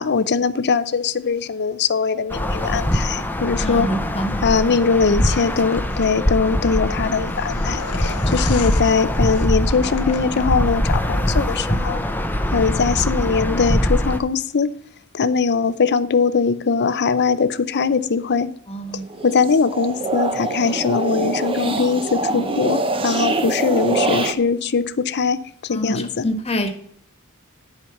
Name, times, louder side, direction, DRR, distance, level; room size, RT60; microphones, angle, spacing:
voice 1, 0.0-3.9 4.4-12.0 12.5-14.7 15.1-18.5 19.2-26.2, left 5 dB, 50° left, 0.6 m, -21 dB
sound 1, 2.3-14.2, equal, 10° left, 0.7 m, -22 dB
voice 2, 3.6-4.4 18.7-19.0 25.7-26.7, equal, 30° left, 1.4 m, -26 dB
sound 2, 5.3-10.8, left 7 dB, 80° left, 0.8 m, -36 dB
sound 3, 19.1-24.3, right 2 dB, 25° right, 0.8 m, -24 dB
10.5 x 5.1 x 5.7 m
head